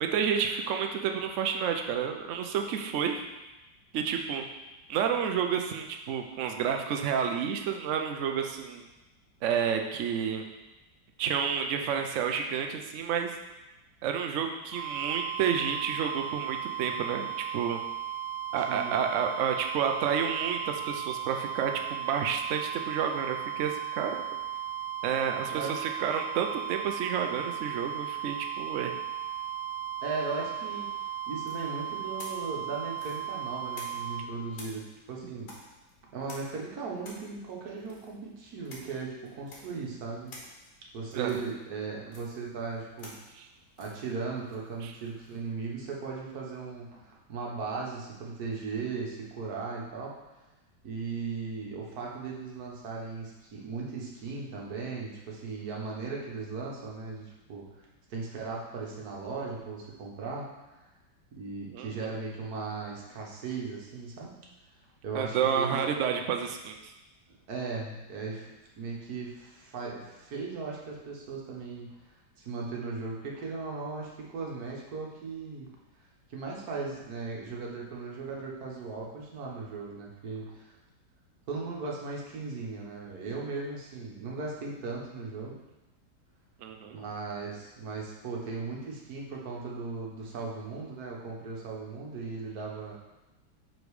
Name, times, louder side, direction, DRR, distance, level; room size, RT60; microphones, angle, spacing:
voice 1, 0.0-3.2 3.9-4.4 4.9-8.8 9.4-10.4 11.2-13.3 14.0-17.8 18.5-24.2 25.0-28.9 41.1-41.4 43.4-43.5 44.8-44.9 61.7-62.1 65.1-66.8 86.6-87.0, right 7 dB, 85° right, 4 dB, 0.6 m, -30 dB
sound 1, 14.7-34.2, right 11 dB, 50° left, 1.7 m, -36 dB
voice 2, 30.0-30.9 31.3-35.5 36.1-40.3 40.9-43.1 43.8-50.1 50.8-57.7 58.1-60.5 61.3-64.3 65.0-65.9 67.5-71.9 72.4-75.7 76.3-80.7 81.5-85.6 86.9-92.9, right 4 dB, 60° right, -2 dB, 1.5 m, -37 dB
sound 2, 31.4-34.2 34.5-45.5, left 2 dB, 70° left, 1.7 m, -51 dB
5.1 x 4.0 x 4.7 m, 1.0 s
omnidirectional pair, 1.9 m